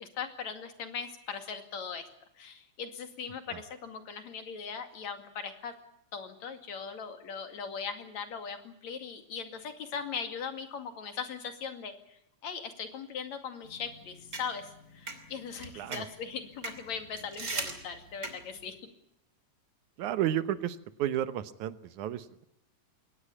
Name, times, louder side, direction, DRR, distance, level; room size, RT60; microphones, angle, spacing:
voice 1, 0.0-2.1 2.4-5.7 6.1-18.8, left 6 dB, 70° left, 7 dB, 3.6 m, -39 dB
sound 1, 13.6-18.7, right 3 dB, 30° right, 3.1 m, -41 dB
voice 2, 20.0-22.5, right 11 dB, 90° right, 13 dB, 2.5 m, -32 dB
21.5 x 19.0 x 8.5 m, 0.78 s
omnidirectional pair, 3.3 m